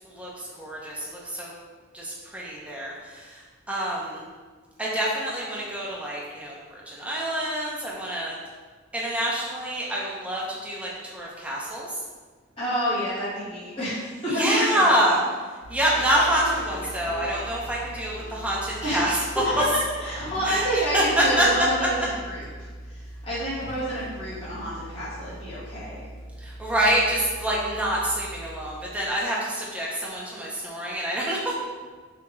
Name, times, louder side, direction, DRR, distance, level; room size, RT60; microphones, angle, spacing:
voice 1, 0.0-1.5 1.9-3.4 3.7-4.2 4.8-8.4 8.9-11.9 14.3-15.2 15.7-19.4 20.4-20.7 20.9-21.5 26.4-31.5, right 1 dB, 5° right, -5 dB, 0.6 m, -26 dB
voice 2, 12.6-14.9 18.8-19.2 19.4-19.7 20.0-22.7 23.2-26.0, equal, 30° left, -13 dB, 1.5 m, -28 dB
sound 1, 15.6-29.2, equal, 50° left, 0.4 m, -40 dB
3.4 x 2.9 x 3.0 m, 1.4 s
head